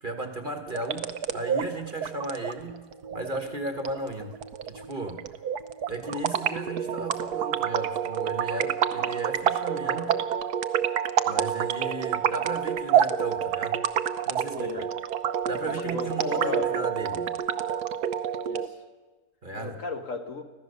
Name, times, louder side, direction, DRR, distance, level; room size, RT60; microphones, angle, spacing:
voice 1, 0.0-2.8 3.1-4.3 4.6-5.3 5.9-10.2 11.3-13.9 14.3-14.9 15.5-17.3 19.4-19.8, right 2 dB, 30° right, 5 dB, 1.4 m, -35 dB
sound 1, 0.7-18.7, right 9 dB, 70° right, 1.4 m, -28 dB
voice 2, 14.5-14.9 15.6-16.8 18.5-18.8 19.6-20.4, left 4 dB, 55° left, 5 dB, 1.7 m, -35 dB
25.5 x 15.5 x 6.7 m, 1.3 s
omnidirectional pair, 1.8 m